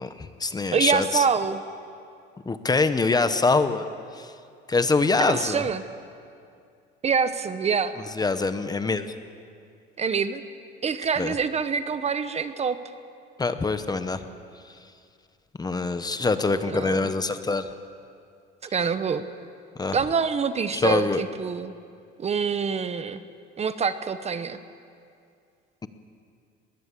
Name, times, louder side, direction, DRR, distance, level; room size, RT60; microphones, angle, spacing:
voice 1, 0.0-1.2 2.5-3.8 4.2-4.3 4.7-5.6 8.2-9.1 11.2-11.3 13.4-14.2 15.6-17.7 19.8-20.0 20.7-21.2, left 3 dB, 20° left, 10 dB, 0.9 m, -24 dB
voice 2, 0.7-1.6 5.3-5.8 7.0-7.9 10.0-10.4 10.8-12.8 16.7-17.1 18.6-19.2 19.9-21.7 22.2-23.2 23.6-24.6, right 6 dB, 30° right, 12 dB, 0.9 m, -26 dB
21.0 x 18.5 x 8.4 m, 2.4 s
cardioid pair, 125°, 21 cm